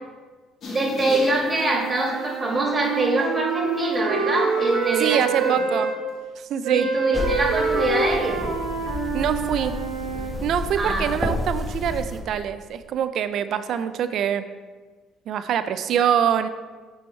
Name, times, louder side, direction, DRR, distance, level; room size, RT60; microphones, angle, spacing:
sound 1, 0.6-2.3 2.8-3.0 4.9-5.5, left 2 dB, 55° left, 1.7 m, -36 dB
voice 1, 0.7-5.6 6.7-8.4 10.8-11.0, right 2 dB, 30° right, -1 dB, 2.1 m, -24 dB
Wind instrument woodwind instrument, 1.5-6.0 6.6-10.3, right 5 dB, 85° right, 1.3 m, -26 dB
voice 2, 5.0-5.9 6.4-6.9 9.1-9.7 10.4-14.4 15.3-16.5, right 9 dB, 65° right, 11 dB, 0.4 m, -24 dB
sound 2, 7.1-12.2, left 2 dB, 5° left, 1.4 m, -31 dB
7.7 x 4.7 x 4.4 m, 1.4 s
supercardioid pair, 70°, 0 cm